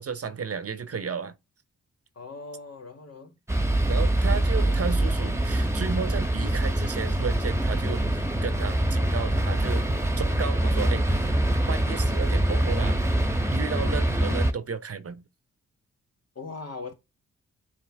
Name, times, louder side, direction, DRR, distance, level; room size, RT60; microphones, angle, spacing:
voice 1, 0.0-1.3 3.9-9.9 10.2-11.3 11.7-13.0 13.5-15.2, right 6 dB, 45° right, 1.0 m, -33 dB
voice 2, 2.2-3.3 13.8-14.0 16.4-16.9, left 4 dB, 50° left, 2.1 m, -40 dB
sound 1, 3.5-14.5, right 1 dB, 10° right, 1.4 m, -24 dB
9.7 x 3.5 x 3.6 m
supercardioid pair, 40°, 32 cm